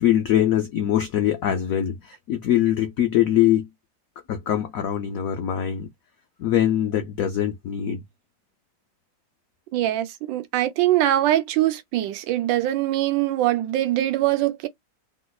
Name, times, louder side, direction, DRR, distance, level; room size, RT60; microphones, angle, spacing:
voice 1, 0.0-3.7 4.3-5.9 6.4-8.0, left 11 dB, 90° left, 0.7 m, -22 dB
voice 2, 9.7-14.7, right 14 dB, 80° right, 1.3 m, -22 dB
3.2 x 2.8 x 2.3 m
omnidirectional pair, 2.1 m